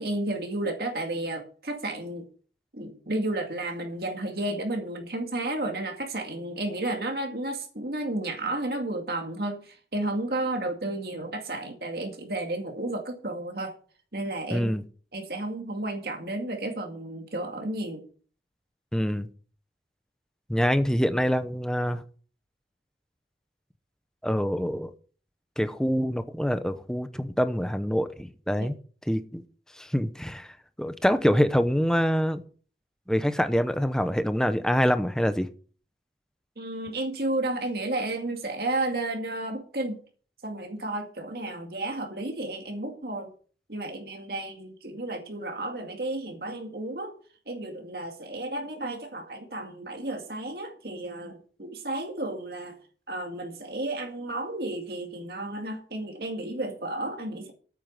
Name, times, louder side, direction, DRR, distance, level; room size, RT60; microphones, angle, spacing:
voice 1, 0.0-2.3 2.7-13.8 14.1-14.7 15.1-18.0 28.6-28.7 36.6-40.0 40.4-43.3 43.7-47.1 47.5-52.8 53.1-57.5, right 2 dB, 60° right, 2.1 m, -32 dB
voice 2, 14.5-14.8 18.9-19.3 20.5-22.0 24.2-24.9 25.6-28.7 29.1-29.4 29.8-30.5 30.8-32.4 33.1-35.5, equal, 5° left, 0.8 m, -25 dB
9.1 x 8.4 x 7.8 m
head